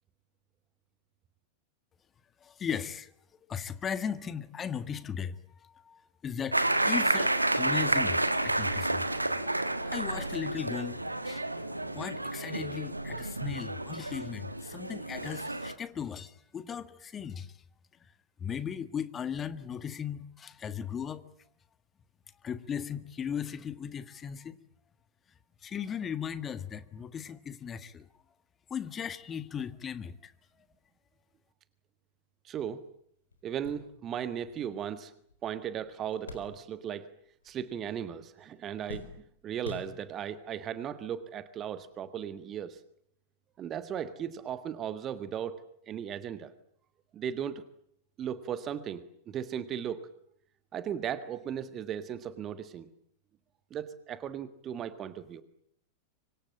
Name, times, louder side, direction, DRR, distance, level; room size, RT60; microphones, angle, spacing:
voice 1, 2.4-3.1 3.5-9.0 9.8-11.5 11.9-17.5 18.4-21.2 22.4-24.6 25.6-28.1 28.7-30.3, left 8 dB, 25° left, 1.7 m, -37 dB
sound 1, 6.5-15.7, right 2 dB, 85° right, 1.6 m, -30 dB
voice 2, 32.4-32.8 33.4-35.1 35.4-37.1 37.4-39.0 39.4-42.8 43.6-46.5 47.1-47.6 48.2-50.1 50.7-52.9 53.7-55.4, right 9 dB, 30° right, 1.6 m, -36 dB
sound 2, 32.8-32.9 33.3-37.1 37.4-38.1 38.4-40.4 41.2-41.3 42.6-42.7, left 3 dB, 75° left, 4.6 m, -48 dB
25.5 x 25.0 x 8.7 m
figure-of-eight pair, 90°, 0 cm